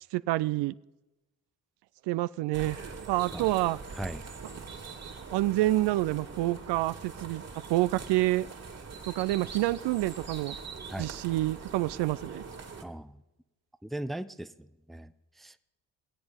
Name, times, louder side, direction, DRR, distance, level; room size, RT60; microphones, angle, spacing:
voice 1, 0.1-0.7 2.1-2.8 3.1-3.8 5.3-7.4 7.7-8.5 9.1-10.6 11.0-12.4, right 17 dB, 65° right, 18 dB, 0.5 m, -28 dB
sound 1, 2.5-12.8, right 4 dB, 35° right, 2.1 m, -43 dB
voice 2, 12.8-13.1 13.8-15.1 15.4-15.5, right 1 dB, ahead, 13 dB, 0.5 m, -38 dB
20.5 x 8.0 x 5.1 m, 1.0 s
hypercardioid pair, 50°, 45 cm